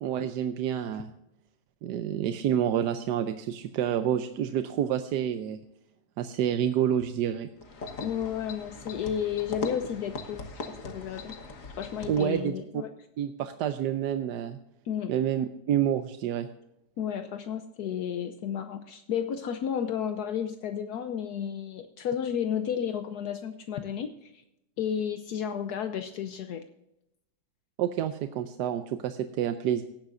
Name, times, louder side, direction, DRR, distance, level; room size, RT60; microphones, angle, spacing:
voice 1, 0.0-1.1 1.8-5.6 6.2-7.5 12.1-12.8 13.2-14.6 15.1-16.5 27.8-29.8, right 10 dB, 85° right, 9 dB, 1.3 m, -28 dB
sound 1, 7.6-12.5, left 3 dB, 55° left, 1.7 m, -40 dB
voice 2, 8.0-11.3 11.8-12.9 14.8-15.1 17.0-24.4 24.8-26.6, left 8 dB, 75° left, 8 dB, 1.2 m, -32 dB
17.5 x 10.5 x 2.5 m, 0.86 s
omnidirectional pair, 1.8 m